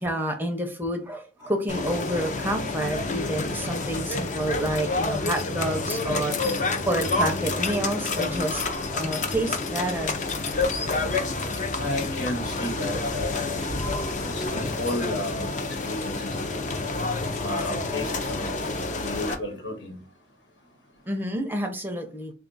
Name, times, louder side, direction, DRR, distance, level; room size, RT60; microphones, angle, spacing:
voice 1, 0.0-8.6 8.9-10.2 21.1-22.3, right 1 dB, 10° right, 0.5 m, -29 dB
sound 1, 1.7-19.4, left 3 dB, 40° left, 0.5 m, -28 dB
voice 2, 11.8-13.6 14.2-15.5 15.9-16.6 17.4-18.5 19.0-20.0, left 1 dB, 70° left, 1.3 m, -32 dB
3.6 x 2.3 x 3.9 m
head